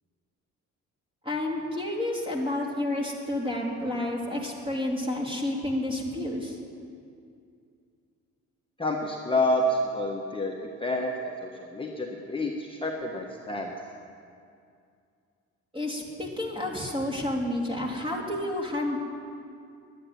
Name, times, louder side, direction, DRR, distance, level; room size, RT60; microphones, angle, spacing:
voice 1, 1.2-6.6 15.7-19.0, left 1 dB, 20° right, -1 dB, 3.0 m, -30 dB
voice 2, 8.8-13.7, left 1 dB, 15° left, -1 dB, 1.3 m, -29 dB
11.5 x 9.8 x 9.3 m, 2.4 s
cardioid pair, 90°, 30 cm